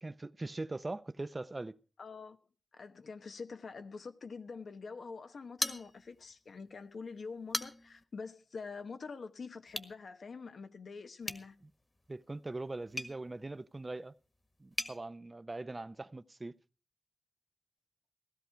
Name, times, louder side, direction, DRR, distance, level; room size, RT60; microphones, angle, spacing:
voice 1, 0.0-1.8 12.1-14.1 14.6-16.6, right 2 dB, 35° right, 0.7 m, -41 dB
voice 2, 2.0-2.4 2.7-11.6, left 4 dB, 80° left, 1.0 m, -45 dB
sound 1, 5.6-6.4 6.7-6.8 7.3-8.0 9.7-10.0 11.2-15.0, left 2 dB, 35° left, 1.6 m, -41 dB
16.5 x 13.0 x 4.6 m
cardioid pair, 55°, 0 cm